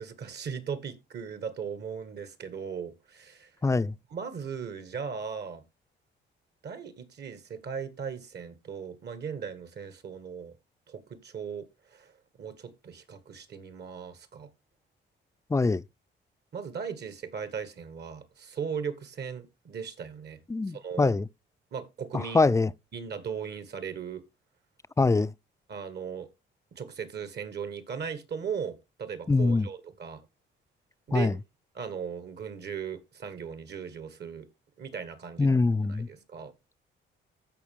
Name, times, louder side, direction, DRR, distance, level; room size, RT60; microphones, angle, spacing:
voice 1, 0.0-3.5 4.1-5.6 6.6-10.5 10.9-11.7 11.9-12.1 12.4-14.5 16.5-20.4 20.7-21.1 21.7-22.6 22.9-24.2 25.7-26.3 26.7-30.3 31.1-31.4 31.8-34.5 34.8-35.6 35.9-36.5, right 6 dB, 55° right, 1.9 m, -38 dB
voice 2, 3.6-3.9 15.5-15.8 20.5-21.3 22.1-22.7 25.0-25.3 29.3-29.7 31.1-31.3 35.4-36.1, left 3 dB, 15° left, 0.4 m, -24 dB
15.0 x 5.5 x 3.6 m
cardioid pair, 90°, 20 cm